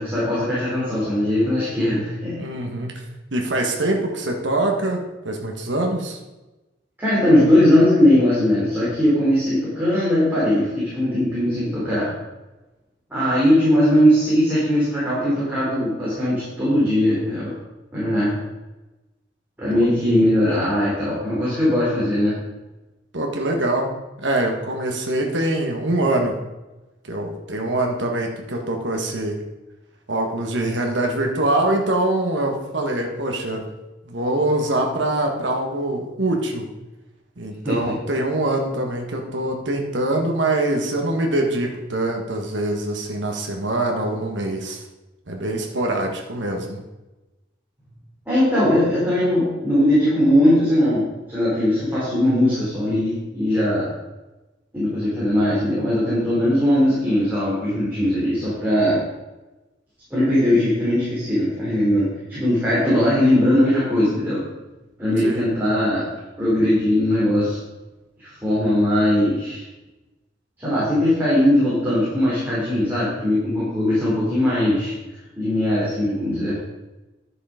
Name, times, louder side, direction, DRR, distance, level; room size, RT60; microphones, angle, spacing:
voice 1, 0.0-2.4 7.0-12.1 13.1-17.5 17.9-18.3 19.6-22.3 37.6-37.8 48.3-53.9 54.7-59.0 60.1-64.4 65.0-66.0 66.4-67.6 68.2-69.6 70.6-74.9 75.4-76.6, left 1 dB, 10° right, -11 dB, 3.7 m, -19 dB
voice 2, 2.4-2.9 3.3-5.0 5.2-6.2 19.7-19.9 23.1-23.9 24.2-26.3 27.0-29.4 30.1-33.6 34.0-36.6 37.4-44.8 45.3-46.8 65.2-65.5, right 1 dB, 70° right, 2 dB, 1.6 m, -24 dB
10.5 x 6.8 x 5.1 m, 1.1 s
head